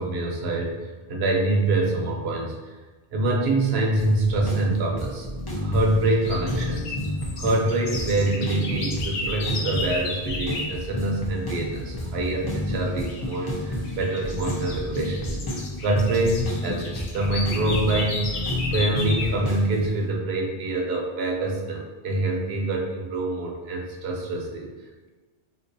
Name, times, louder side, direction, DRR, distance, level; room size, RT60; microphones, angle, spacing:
voice 1, 0.0-2.7 3.1-5.3 5.6-7.0 7.3-15.4 15.8-18.4 18.7-24.7, right 2 dB, 70° right, 0 dB, 0.9 m, -25 dB
sound 1, 4.0-19.9, left 1 dB, 30° left, 0.5 m, -31 dB
sound 2, 6.1-10.8 13.0-13.4 13.8-19.4, left 3 dB, 85° left, 0.9 m, -34 dB
4.0 x 2.5 x 2.7 m, 1.3 s
omnidirectional pair, 1.1 m